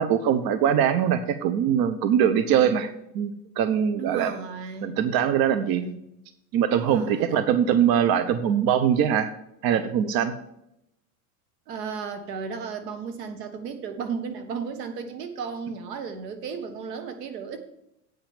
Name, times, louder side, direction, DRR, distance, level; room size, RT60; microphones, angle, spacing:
voice 1, 0.0-2.9 3.1-4.4 4.8-5.8 6.5-9.3 9.6-10.3, right 9 dB, 45° right, 10 dB, 0.9 m, -22 dB
voice 2, 3.9-5.0 5.5-6.1 6.7-7.4 11.7-17.6, right 5 dB, 80° right, 7 dB, 1.7 m, -34 dB
8.8 x 5.8 x 7.2 m, 0.80 s
hypercardioid pair, 90°, 48 cm